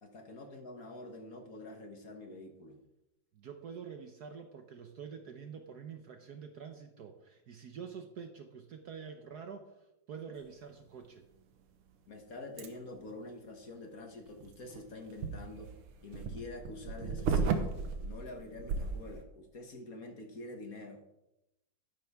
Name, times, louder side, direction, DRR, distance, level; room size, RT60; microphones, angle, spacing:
voice 1, 0.0-2.8 12.1-15.7 16.0-17.7 18.0-21.0, left 2 dB, 45° left, 4 dB, 1.5 m, -47 dB
voice 2, 3.3-11.3, right 6 dB, 60° right, 6 dB, 1.1 m, -47 dB
sound 1, 12.6-12.7 14.3-19.2, right 5 dB, 85° right, 2.0 m, -35 dB
12.5 x 11.0 x 3.5 m, 0.87 s
omnidirectional pair, 2.3 m